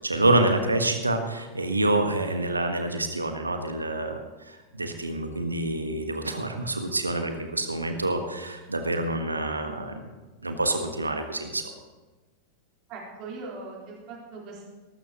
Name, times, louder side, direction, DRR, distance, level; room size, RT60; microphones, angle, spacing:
voice 1, 0.0-10.0 10.4-11.6, right 2 dB, 80° right, 6 dB, 1.4 m, -27 dB
voice 2, 12.9-14.7, right 3 dB, 40° right, -3 dB, 3.8 m, -40 dB
21.0 x 12.5 x 3.0 m, 1.2 s
figure-of-eight pair, 90°, 0 cm